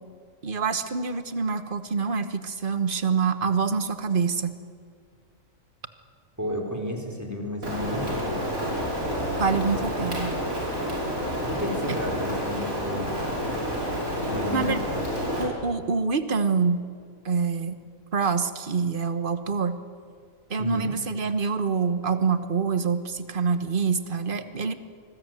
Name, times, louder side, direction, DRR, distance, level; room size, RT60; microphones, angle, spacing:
voice 1, 0.4-4.6 9.4-10.4 11.9-12.0 14.5-14.8 15.4-16.8 17.2-17.8 18.1-19.8 20.5-24.8, right 5 dB, 40° right, 10 dB, 1.4 m, -26 dB
voice 2, 6.4-8.4 11.4-13.2 14.3-14.8 20.6-20.9, left 1 dB, 10° right, 1 dB, 4.1 m, -32 dB
Rain, 7.6-15.5, equal, 75° right, 5.9 m, -29 dB
25.0 x 20.0 x 9.1 m, 2.1 s
omnidirectional pair, 1.5 m